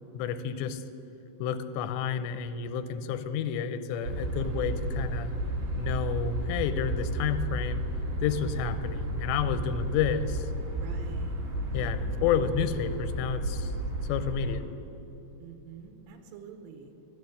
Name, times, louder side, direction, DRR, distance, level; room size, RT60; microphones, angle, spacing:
voice 1, 0.1-0.8 1.4-5.3 5.8-7.8 8.2-10.5 11.7-13.7 14.0-14.7, left 8 dB, 85° left, 11 dB, 2.8 m, -30 dB
sound 1, 4.0-14.6, right 1 dB, 65° right, 3.6 m, -32 dB
voice 2, 10.8-11.4 11.8-12.1 15.4-16.9, right 6 dB, 80° right, 4 dB, 3.1 m, -47 dB
12.0 x 7.2 x 9.3 m, 2.9 s
omnidirectional pair, 5.1 m